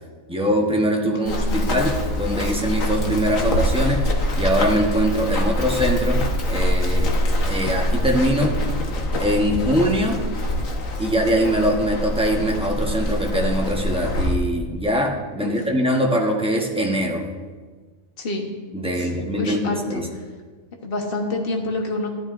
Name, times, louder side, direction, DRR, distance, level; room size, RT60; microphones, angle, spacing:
voice 1, 0.3-4.1 4.4-7.1 7.4-8.6 9.2-10.2 11.0-17.2 18.7-20.1, equal, 5° right, 0 dB, 0.9 m, -22 dB
voice 2, 1.0-1.8 15.4-15.5 18.2-18.5 19.0-19.1 19.3-20.0 20.8-22.1, left 2 dB, 45° left, 2 dB, 1.3 m, -27 dB
Run, 1.3-14.3, left 1 dB, 75° left, 1.5 m, -24 dB
13.5 x 11.5 x 2.6 m, 1.4 s
omnidirectional pair, 1.4 m